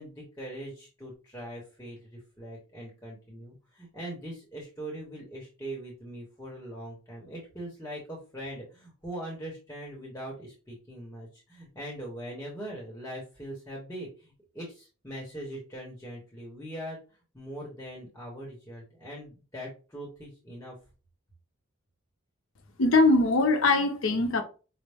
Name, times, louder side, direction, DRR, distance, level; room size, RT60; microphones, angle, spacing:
voice 1, 0.0-17.0 17.3-20.8, right 1 dB, 10° left, 0.9 m, -41 dB
voice 2, 22.8-24.4, left 2 dB, 65° left, 0.6 m, -22 dB
5.2 x 2.1 x 3.4 m
head